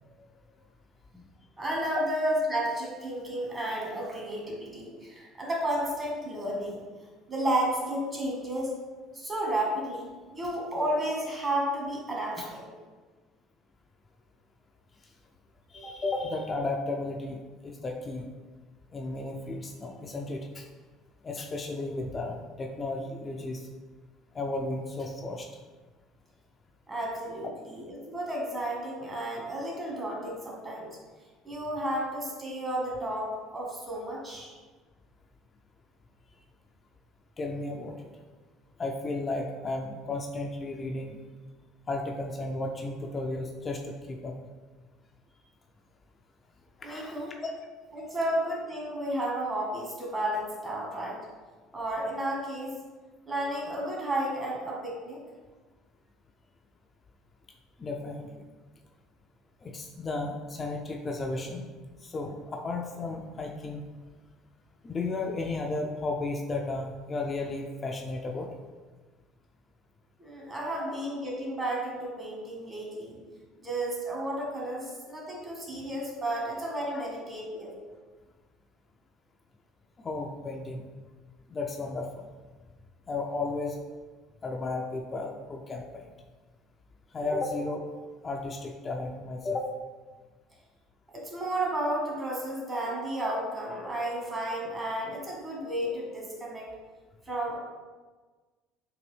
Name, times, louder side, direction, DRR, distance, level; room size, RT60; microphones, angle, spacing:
voice 1, 1.6-6.8 7.3-8.7 9.1-12.7 15.8-16.0 26.9-31.0 31.4-34.5 46.8-47.3 47.9-51.2 51.7-52.7 53.3-55.2 70.2-73.2 73.6-77.7 87.3-87.4 91.1-96.7 97.3-97.6, right 1 dB, 25° right, -3 dB, 1.4 m, -32 dB
voice 2, 15.7-18.3 18.9-20.7 21.2-23.7 24.3-25.5 37.4-38.1 38.8-41.2 41.9-44.4 46.8-47.5 57.8-58.4 59.6-61.6 62.0-63.8 64.8-68.5 70.6-70.9 76.9-77.0 80.0-80.9 81.5-82.3 83.1-83.8 84.4-86.0 87.1-87.9 88.2-89.7, left 2 dB, 35° left, 1 dB, 0.4 m, -34 dB
3.9 x 2.6 x 3.3 m, 1.3 s
hypercardioid pair, 70°, 0 cm